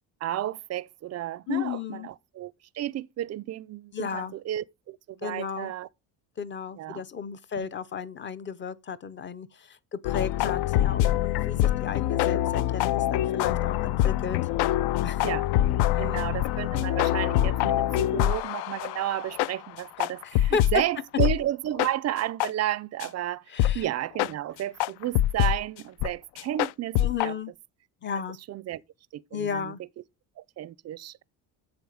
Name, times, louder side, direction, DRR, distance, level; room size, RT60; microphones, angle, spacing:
voice 1, 0.2-5.9 6.8-7.0 7.6-7.7 15.2-15.5 16.0-27.3 28.5-28.8 29.1-29.7 30.4-31.2, right 13 dB, 40° right, 0.4 m, -32 dB
voice 2, 1.5-2.1 3.9-4.3 5.2-5.7 6.4-14.4 15.0-15.2 15.9-16.3 20.2-20.8 23.5-23.8 27.0-27.5 28.0-28.4 29.3-29.8, left 7 dB, 30° left, 0.6 m, -34 dB
sound 1, 10.0-20.8 21.2-21.4 21.8-21.9 22.4-22.5 23.0-23.1 23.6-23.8 24.2-24.3 24.8-25.6 26.0-26.1 26.4-27.3, left 13 dB, 80° left, 0.5 m, -25 dB
7.8 x 7.0 x 4.9 m
cardioid pair, 160°, 39 cm